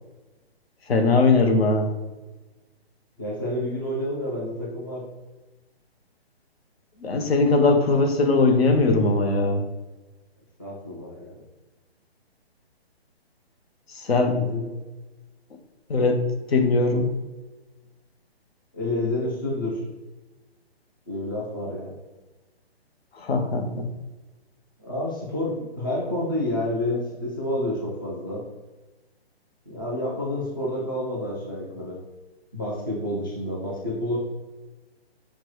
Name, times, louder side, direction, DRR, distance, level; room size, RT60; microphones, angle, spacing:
voice 1, 0.9-1.9 7.0-9.6 13.9-14.4 15.9-17.1 23.1-23.9, left 3 dB, 75° left, 5 dB, 0.8 m, -20 dB
voice 2, 3.2-5.0 10.6-11.4 14.1-14.7 18.7-19.8 21.1-22.0 24.8-28.4 29.7-32.0 32.5-34.2, left 1 dB, 20° left, -5 dB, 0.4 m, -29 dB
5.9 x 2.2 x 3.0 m, 1.2 s
hypercardioid pair, 170°, 31 cm